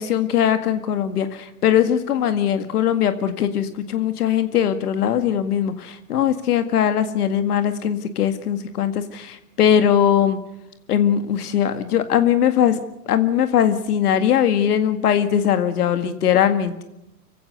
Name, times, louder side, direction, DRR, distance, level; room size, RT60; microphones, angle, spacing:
voice 1, 0.0-10.4 10.9-12.8 13.1-16.7, left 9 dB, 70° left, 9 dB, 2.1 m, -20 dB
25.0 x 16.0 x 8.1 m, 0.88 s
hypercardioid pair, 120°, 47 cm